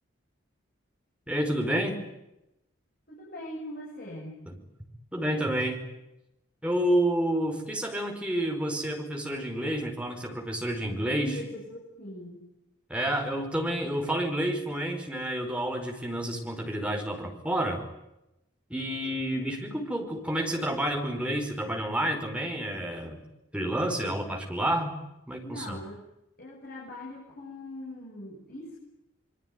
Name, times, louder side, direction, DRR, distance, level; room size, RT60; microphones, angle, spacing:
voice 1, 1.3-2.0 4.5-4.6 5.1-5.8 6.6-11.3 12.9-17.8 18.7-23.2 23.5-24.9 25.3-25.8, right 1 dB, 5° right, 2 dB, 4.9 m, -29 dB
voice 2, 3.1-4.4 11.1-12.5 25.4-26.0 26.4-28.8, left 1 dB, 45° left, -2 dB, 7.5 m, -41 dB
26.5 x 23.5 x 9.5 m, 0.91 s
head